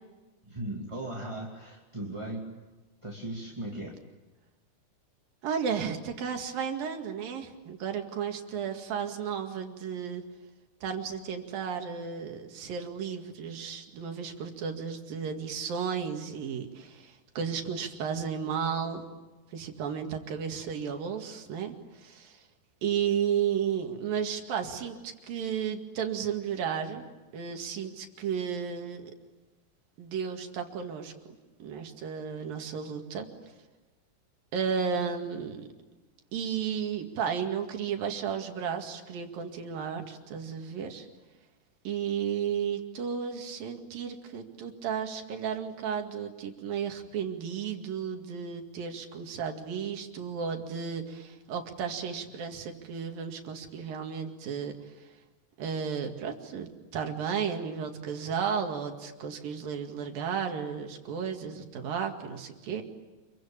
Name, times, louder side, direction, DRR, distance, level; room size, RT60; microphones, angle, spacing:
voice 1, 0.4-2.5 3.0-4.0, right 1 dB, 10° right, -2 dB, 2.0 m, -37 dB
voice 2, 5.4-10.2 10.8-19.0 19.5-22.4 22.8-27.1 27.3-29.1 30.0-31.1 31.6-33.3 34.5-35.7 36.3-41.1 41.9-55.1 55.6-62.8, right 7 dB, 70° right, 4 dB, 3.9 m, -33 dB
28.0 x 23.5 x 8.8 m, 1.2 s
omnidirectional pair, 4.3 m